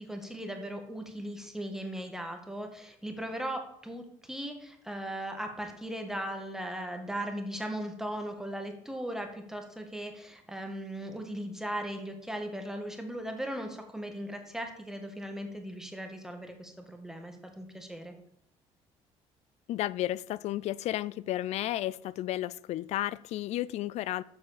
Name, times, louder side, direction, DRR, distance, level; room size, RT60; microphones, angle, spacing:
voice 1, 0.0-18.1, right 1 dB, 5° right, 2.0 m, -38 dB
voice 2, 19.7-24.2, left 14 dB, 70° left, 0.4 m, -33 dB
7.6 x 6.3 x 7.5 m
supercardioid pair, 85°, 12 cm